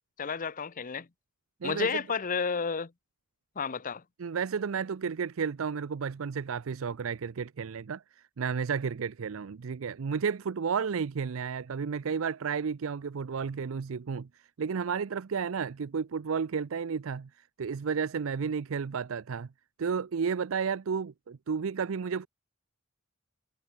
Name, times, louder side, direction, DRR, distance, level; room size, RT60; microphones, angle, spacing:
voice 1, 0.2-1.1 1.6-2.9 3.6-4.0, left 5 dB, 40° left, 0.7 m, -31 dB
voice 2, 4.2-8.0 8.4-14.3 14.6-17.3 17.6-19.5 19.8-22.3, right 6 dB, 75° right, 0.5 m, -32 dB
head